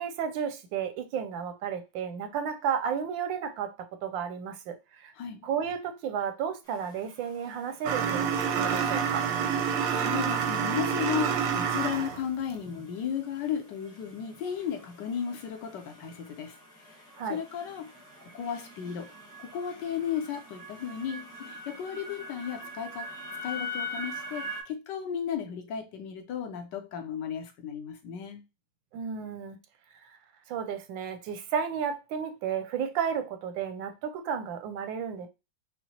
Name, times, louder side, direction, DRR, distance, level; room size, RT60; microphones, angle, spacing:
voice 1, 0.0-3.7 4.0-5.1 5.4-8.3 8.5-9.3 17.2-17.4 28.9-29.6 30.0-30.2 30.5-35.3, right 7 dB, 85° right, 1.3 m, -33 dB
voice 2, 5.2-5.5 9.9-16.6 16.9-17.0 17.3-17.9 18.2-19.1 19.4-23.1 23.4-28.4, left 8 dB, 70° left, 1.3 m, -34 dB
sound 1, 6.6-24.6, left 1 dB, 5° left, 0.8 m, -44 dB
sound 2, 7.8-12.2, right 7 dB, 65° right, 0.9 m, -28 dB
5.8 x 2.1 x 2.8 m
omnidirectional pair, 2.1 m